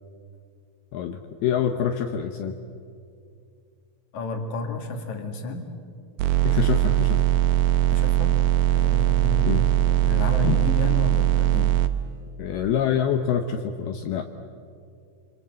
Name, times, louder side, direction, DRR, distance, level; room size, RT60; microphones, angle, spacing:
voice 1, 0.9-2.6 6.4-7.2 9.4-9.7 10.4-10.6 12.4-14.2, left 8 dB, 75° left, 6 dB, 2.4 m, -26 dB
voice 2, 4.1-5.7 7.9-8.4 8.7-11.7, left 4 dB, 50° left, 4 dB, 2.9 m, -32 dB
sound 1, 6.2-11.9, right 15 dB, 85° right, 2.1 m, -21 dB
26.0 x 25.5 x 7.7 m, 2.4 s
omnidirectional pair, 5.4 m